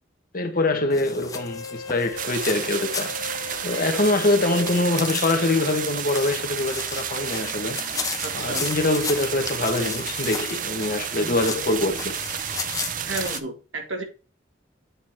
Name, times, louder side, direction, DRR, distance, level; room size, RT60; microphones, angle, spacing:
voice 1, 0.3-3.1 3.6-7.8 8.3-12.2, left 2 dB, 45° left, 1.3 m, -24 dB
sound 1, 0.9-13.4, left 5 dB, 20° left, 0.9 m, -35 dB
Wind instrument woodwind instrument, 1.3-5.6, left 4 dB, 80° left, 1.1 m, -38 dB
sound 2, 2.2-13.4, right 9 dB, 40° right, 0.5 m, -31 dB
voice 2, 8.2-8.7 13.0-14.0, right 2 dB, 75° right, 2.0 m, -32 dB
8.4 x 3.9 x 4.5 m
head